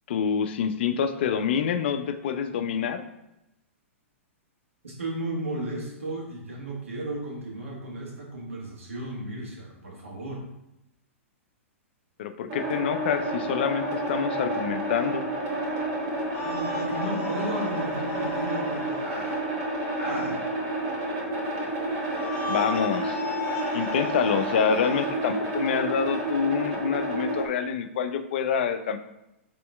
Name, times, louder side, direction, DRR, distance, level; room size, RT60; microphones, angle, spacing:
voice 1, 0.1-3.0 12.2-15.3 22.5-23.2 23.7-29.0, left 7 dB, 50° left, 9 dB, 0.4 m, -27 dB
voice 2, 4.8-10.4 16.3-19.4 20.0-20.4, right 1 dB, 75° right, -2 dB, 1.5 m, -34 dB
sound 1, 12.5-27.5, right 1 dB, 40° right, 1.4 m, -30 dB
sound 2, 16.3-19.1 22.0-25.1, left 4 dB, 35° left, 1.2 m, -37 dB
4.3 x 3.1 x 3.3 m, 0.89 s
figure-of-eight pair, 110°, 7 cm